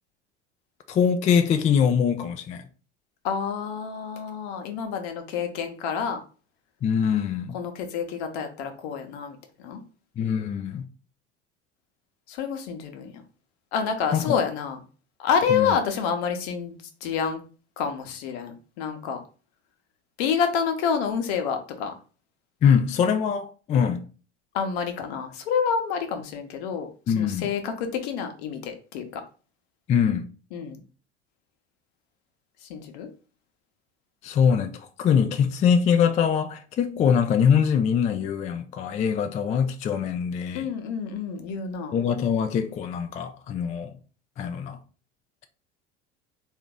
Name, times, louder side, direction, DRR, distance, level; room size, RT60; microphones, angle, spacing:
voice 1, 0.9-2.6 6.8-7.6 10.2-10.8 14.1-14.4 15.5-15.7 22.6-24.0 27.1-27.5 29.9-30.3 34.2-40.7 41.9-43.9 44.4-44.8, left 7 dB, 20° left, 0.3 m, -23 dB
voice 2, 3.2-6.2 7.5-9.8 12.3-13.1 13.7-14.8 15.2-17.4 17.8-19.2 20.2-21.9 24.5-29.2 30.5-30.8 32.6-33.1 40.5-42.0, left 6 dB, 65° left, 0.9 m, -28 dB
3.7 x 2.6 x 3.5 m
hypercardioid pair, 75°, 35 cm